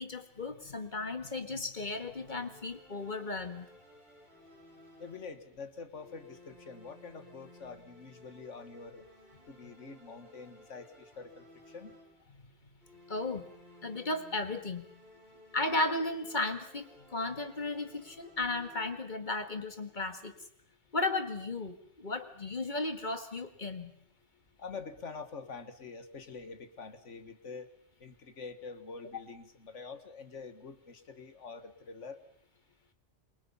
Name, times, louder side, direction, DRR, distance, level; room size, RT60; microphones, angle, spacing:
voice 1, 0.0-3.7 13.1-13.5 13.8-14.9 15.5-20.3 20.9-23.9, left 2 dB, 40° left, 8 dB, 2.1 m, -35 dB
sound 1, 1.8-5.5 5.9-12.4 12.8-19.3, left 1 dB, 60° right, 6.6 m, -57 dB
voice 2, 5.0-9.1 9.5-12.0 15.1-15.4 24.6-27.7 28.0-32.2, left 4 dB, 80° left, 8 dB, 2.0 m, -46 dB
27.5 x 23.5 x 5.6 m, 0.65 s
omnidirectional pair, 1.2 m